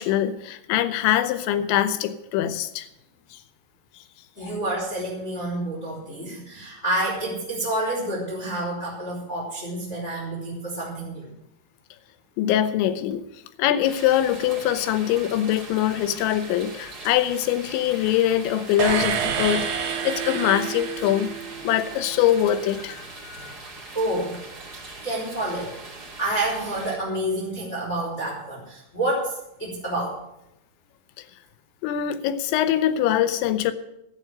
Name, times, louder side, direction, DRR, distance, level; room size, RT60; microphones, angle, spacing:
voice 1, 0.0-2.9 4.4-4.6 12.4-13.2 13.6-21.3 21.6-23.5 31.8-33.7, left 11 dB, 85° left, 3.1 m, -23 dB
voice 2, 4.4-11.3 23.9-24.4 25.0-30.2, right 1 dB, 15° left, 3.3 m, -28 dB
sound 1, 13.8-27.0, right 3 dB, 30° right, 2.0 m, -41 dB
sound 2, 18.8-21.9, right 7 dB, 80° right, 3.5 m, -28 dB
12.0 x 7.8 x 9.0 m
omnidirectional pair, 5.2 m